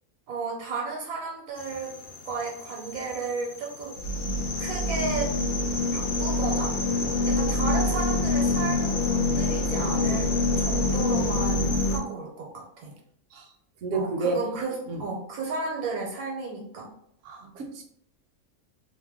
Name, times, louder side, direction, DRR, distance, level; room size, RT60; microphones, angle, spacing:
voice 1, 0.3-1.9 2.2-4.0 4.6-5.3 5.9-6.7 7.2-12.9 13.9-16.9, right 4 dB, 85° right, -1 dB, 1.1 m, -33 dB
sound 1, 1.6-12.0, left 2 dB, 70° left, 0.9 m, -26 dB
voice 2, 13.8-14.4 14.9-15.0 17.2-17.8, right 3 dB, 65° right, 2 dB, 0.9 m, -30 dB
2.6 x 2.1 x 3.4 m, 0.68 s
omnidirectional pair, 1.5 m